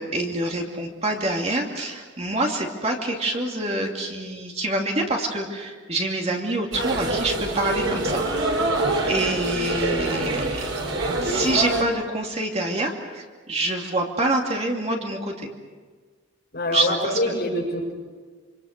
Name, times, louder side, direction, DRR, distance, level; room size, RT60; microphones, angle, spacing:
voice 1, 0.0-8.2 9.1-10.6 11.2-15.5 16.7-17.2, right 2 dB, 30° right, 1 dB, 2.6 m, -26 dB
sound 1, 6.7-11.8, right 2 dB, 85° right, 4.5 m, -25 dB
voice 2, 16.5-17.9, left 1 dB, 50° left, -1 dB, 7.1 m, -25 dB
26.5 x 26.5 x 6.6 m, 1.5 s
head